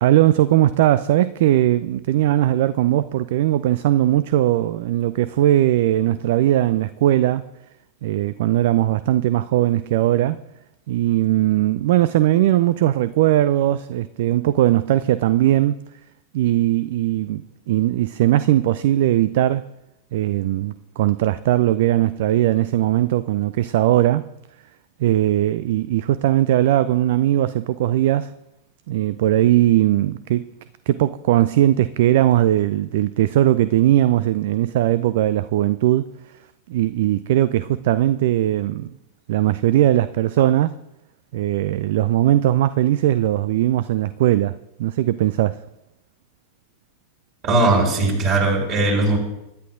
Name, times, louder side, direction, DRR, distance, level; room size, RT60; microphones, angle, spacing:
voice 1, 0.0-7.4 8.0-10.4 10.9-15.8 16.3-19.6 20.1-24.3 25.0-28.3 28.9-30.5 30.9-36.1 36.7-39.0 39.3-40.8 41.3-45.6, right 13 dB, 55° right, 0.3 m, -19 dB
voice 2, 47.4-49.2, right 2 dB, 40° right, 4.8 m, -18 dB
22.0 x 11.0 x 2.5 m
figure-of-eight pair, 90°, 0 cm